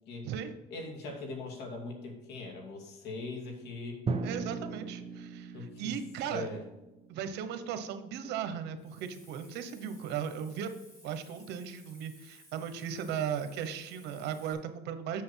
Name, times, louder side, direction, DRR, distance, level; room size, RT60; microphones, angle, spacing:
voice 1, 0.7-4.0 5.5-6.0 6.3-6.6, left 3 dB, 80° left, 1 dB, 2.6 m, -41 dB
Drum, 4.1-7.8, right 4 dB, 35° right, 0.8 m, -38 dB
voice 2, 4.2-6.5 7.1-10.7 11.0-15.2, right 8 dB, 85° right, 9 dB, 1.0 m, -37 dB
Hiss, 8.8-14.5, equal, 20° left, 3.6 m, -58 dB
7.8 x 6.5 x 5.7 m, 0.99 s
cardioid pair, 110°, 17 cm